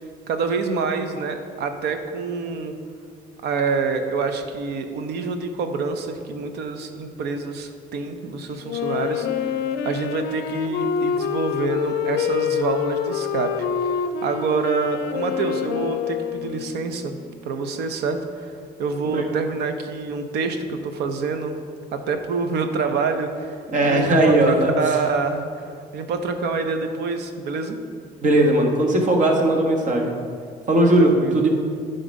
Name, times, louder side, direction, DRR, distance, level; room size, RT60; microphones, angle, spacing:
voice 1, 0.3-2.7 3.4-9.3 9.8-17.2 17.4-18.5 18.8-21.6 21.9-23.5 23.8-25.7 25.9-27.8 31.0-31.4, right 4 dB, 75° right, 7 dB, 0.8 m, -26 dB
Wind instrument woodwind instrument, 8.6-17.2, left 8 dB, 75° left, 0.5 m, -26 dB
voice 2, 23.7-24.7 28.2-30.1 30.7-31.6, right 1 dB, 50° right, 2 dB, 1.4 m, -18 dB
10.0 x 4.0 x 5.3 m, 2.2 s
cardioid pair, 110°, 17 cm